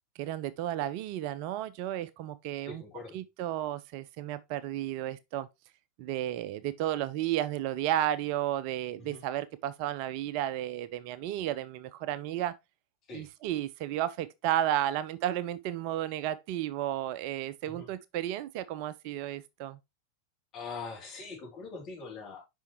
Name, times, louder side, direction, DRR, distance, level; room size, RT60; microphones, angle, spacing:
voice 1, 0.2-2.8 3.1-5.5 6.0-12.5 13.1-19.8, right 12 dB, 45° right, 0.4 m, -33 dB
voice 2, 2.7-3.2 9.0-9.2 13.1-13.3 17.6-17.9 20.5-22.4, left 4 dB, 35° left, 3.0 m, -42 dB
6.2 x 5.4 x 3.0 m
figure-of-eight pair, 90°, 0 cm